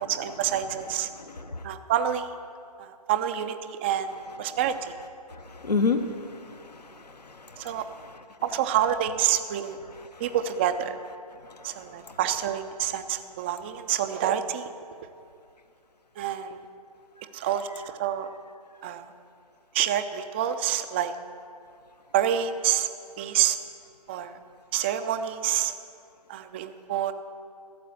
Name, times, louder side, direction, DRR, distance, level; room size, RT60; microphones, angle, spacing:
voice 1, 0.0-1.1 1.6-2.3 2.8-4.9 7.6-7.8 8.4-9.8 10.2-11.0 11.6-14.7 16.2-16.6 17.3-18.3 18.8-19.1 19.7-21.1 22.1-22.9 23.2-23.6 24.1-24.4 24.7-25.7 26.3-27.1, right 10 dB, 15° right, 9 dB, 0.3 m, -27 dB
voice 2, 1.3-1.6 5.3-7.8 12.1-12.2, left 4 dB, 85° left, 7 dB, 1.0 m, -30 dB
13.5 x 7.4 x 8.7 m, 2.4 s
figure-of-eight pair, 135°, 20 cm